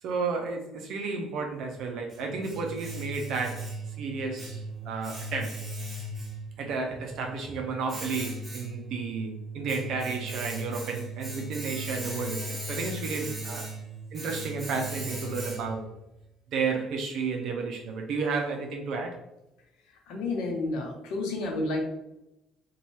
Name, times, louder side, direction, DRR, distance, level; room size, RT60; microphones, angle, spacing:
voice 1, 0.0-5.6 6.6-13.7 14.1-15.9 16.5-19.2, right 4 dB, 65° right, 2 dB, 0.4 m, -32 dB
Domestic sounds home sounds, 1.6-15.9, right 1 dB, 25° right, 1.2 m, -38 dB
voice 2, 20.1-21.9, left 2 dB, 75° left, 2 dB, 0.7 m, -30 dB
2.6 x 2.2 x 3.1 m, 0.90 s
hypercardioid pair, 65°, 0 cm